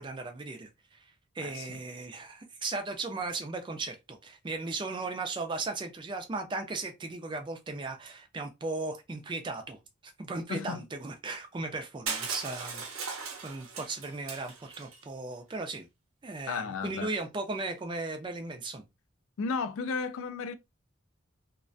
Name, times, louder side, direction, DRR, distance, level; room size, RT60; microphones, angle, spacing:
voice 1, 0.0-9.8 10.2-15.9 16.2-18.8, right 3 dB, 25° right, 0.3 m, -37 dB
voice 2, 1.4-1.8 10.5-10.8 16.5-17.1 19.4-20.5, left 5 dB, 75° left, 0.3 m, -34 dB
Crushing, 12.1-15.0, right 5 dB, 85° right, 0.7 m, -38 dB
2.4 x 2.1 x 2.5 m
head